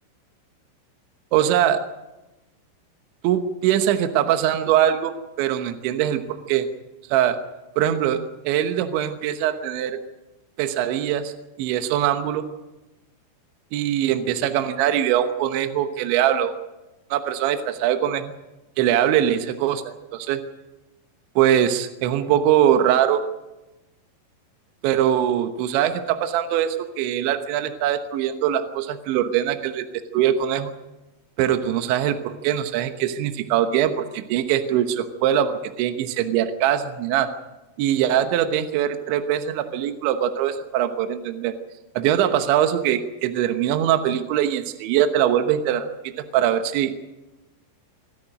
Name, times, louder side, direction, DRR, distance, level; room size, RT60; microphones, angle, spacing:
voice 1, 1.3-1.8 3.2-5.1 5.4-6.7 7.1-7.4 7.8-10.0 10.6-11.3 11.6-12.4 13.7-16.6 17.1-18.3 18.8-20.4 21.4-23.2 24.8-29.8 30.1-30.7 31.4-37.3 37.8-41.5 42.0-45.9 46.3-47.0, right 10 dB, 75° right, 8 dB, 3.2 m, -22 dB
26.0 x 10.5 x 10.0 m, 1.0 s
omnidirectional pair, 5.9 m